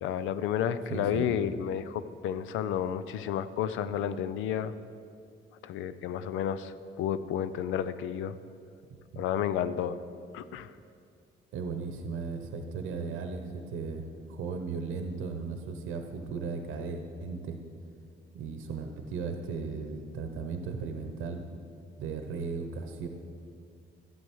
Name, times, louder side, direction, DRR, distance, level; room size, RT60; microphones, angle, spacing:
voice 1, 0.0-4.7 5.6-8.3 9.2-10.0 10.3-10.7, left 9 dB, 90° left, 13 dB, 0.5 m, -31 dB
voice 2, 0.9-1.3 8.9-9.2 11.5-17.6 18.3-21.4 22.0-23.1, right 4 dB, 85° right, 6 dB, 0.9 m, -36 dB
12.0 x 7.9 x 4.6 m, 2.3 s
cardioid pair, 90°, 20 cm